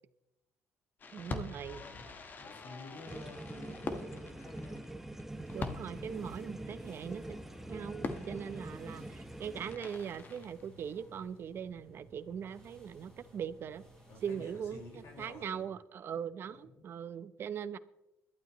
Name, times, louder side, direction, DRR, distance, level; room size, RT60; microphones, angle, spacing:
Fireworks, 1.0-11.2, left 3 dB, 35° left, 1.3 m, -45 dB
voice 1, 1.1-1.8 5.5-7.4 7.7-13.8 14.2-17.8, right 8 dB, 50° right, 0.7 m, -41 dB
voice 2, 1.7-2.1 2.4-4.9 14.1-15.7 16.5-16.9, left 2 dB, 65° left, 5.4 m, -51 dB
sound 1, 3.1-9.8, right 1 dB, 5° right, 0.7 m, -44 dB
sound 2, 5.3-15.6, equal, 15° left, 4.7 m, -58 dB
21.5 x 12.0 x 3.1 m
cardioid pair, 110°, 5 cm